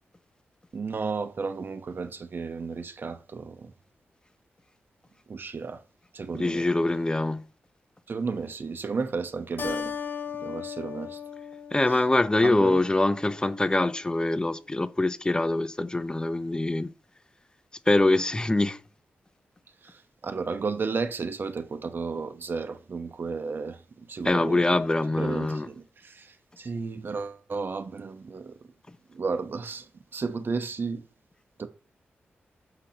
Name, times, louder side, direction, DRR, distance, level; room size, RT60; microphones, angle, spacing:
voice 1, 0.7-3.7 5.3-5.8 6.1-6.7 8.1-10.0 10.4-11.2 11.9-12.0 12.4-12.8 19.8-24.6 25.2-28.7 29.1-31.0 31.6-31.7, right 4 dB, 55° right, 0.9 m, -33 dB
voice 2, 6.4-7.5 11.7-16.9 17.9-18.8 24.3-25.7, left 2 dB, 20° left, 0.6 m, -24 dB
Keyboard (musical), 9.6-12.5, left 7 dB, 55° left, 1.7 m, -36 dB
6.9 x 5.8 x 2.9 m
cardioid pair, 55°, 4 cm